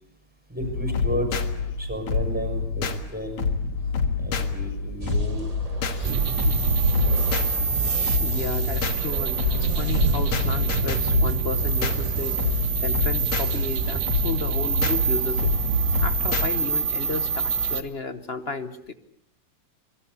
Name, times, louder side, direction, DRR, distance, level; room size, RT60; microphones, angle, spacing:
voice 1, 0.5-1.4 1.8-3.4 4.2-5.5 6.0-6.6, right 1 dB, 5° right, 6 dB, 6.3 m, -33 dB
sound 1, 0.6-16.5, left 5 dB, 80° left, 2.6 m, -27 dB
sound 2, 5.0-14.3, right 2 dB, 20° right, 1.5 m, -35 dB
sound 3, 6.0-17.8, right 6 dB, 75° right, 2.3 m, -26 dB
voice 2, 8.2-12.4 12.8-15.6 16.0-18.9, left 4 dB, 40° left, 11 dB, 0.9 m, -33 dB
25.0 x 22.5 x 8.2 m, 0.70 s
omnidirectional pair, 2.4 m